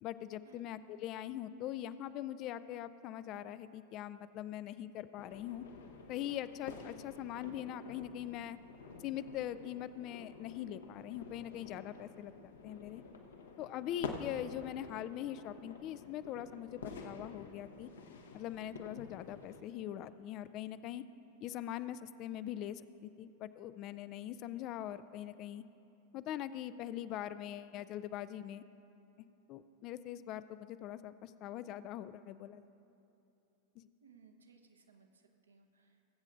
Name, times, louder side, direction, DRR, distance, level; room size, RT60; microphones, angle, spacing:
voice 1, 0.0-5.6 6.1-8.6 9.0-13.0 13.6-17.9 18.3-21.0 21.4-25.6 26.1-28.6 29.2-32.6 33.8-33.9, left 12 dB, 40° left, 14 dB, 0.3 m, -42 dB
sound 1, 5.2-19.6, left 4 dB, 65° left, 0.8 m, -49 dB
voice 2, 34.0-36.1, right 5 dB, 70° right, 4 dB, 0.9 m, -63 dB
21.0 x 8.2 x 2.5 m, 2.9 s
figure-of-eight pair, 90°, 0 cm